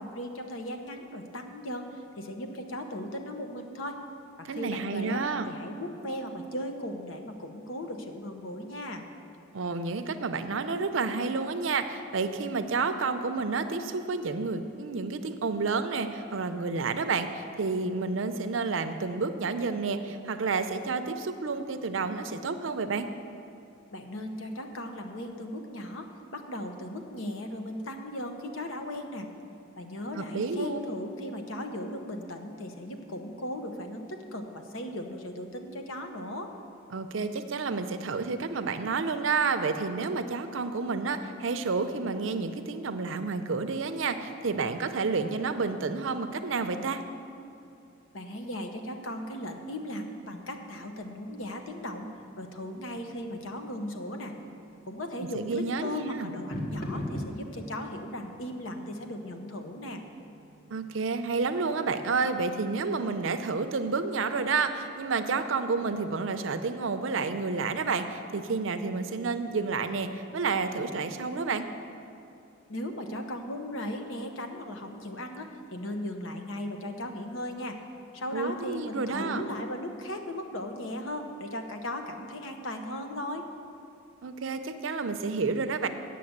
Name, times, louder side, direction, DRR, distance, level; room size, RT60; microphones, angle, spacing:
voice 1, 0.0-4.0 4.4-9.0 23.9-29.3 29.8-36.5 48.1-52.1 52.4-54.3 54.9-60.0 72.7-77.8 78.1-83.5, left 1 dB, 75° left, 5 dB, 0.9 m, -37 dB
voice 2, 4.5-5.5 9.5-23.1 30.1-30.8 36.9-47.0 55.2-56.3 60.7-71.7 78.3-79.4 84.2-85.9, right 4 dB, 75° right, 9 dB, 0.6 m, -30 dB
sound 1, 52.0-62.8, left 1 dB, 50° left, 1.3 m, -44 dB
8.5 x 6.6 x 8.0 m, 2.6 s
head